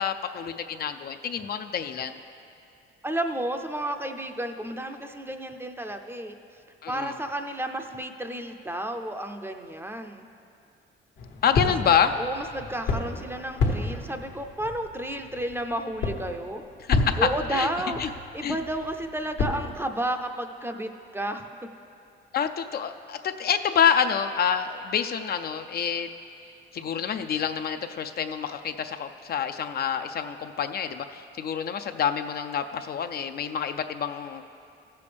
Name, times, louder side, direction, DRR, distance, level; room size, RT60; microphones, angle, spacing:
voice 1, 0.0-2.1 6.8-7.1 11.4-12.2 16.9-17.2 17.5-17.7 18.0-18.1 18.4-18.6 22.3-26.1 26.7-34.4, left 8 dB, 50° left, 8 dB, 0.4 m, -27 dB
voice 2, 3.0-6.3 6.9-10.3 11.6-11.7 12.2-16.6 17.2-21.6, right 1 dB, 10° right, 5 dB, 0.5 m, -32 dB
sound 1, 11.2-19.8, left 3 dB, 80° left, 1.3 m, -31 dB
15.0 x 6.9 x 3.4 m, 2.6 s
cardioid pair, 90°, 20 cm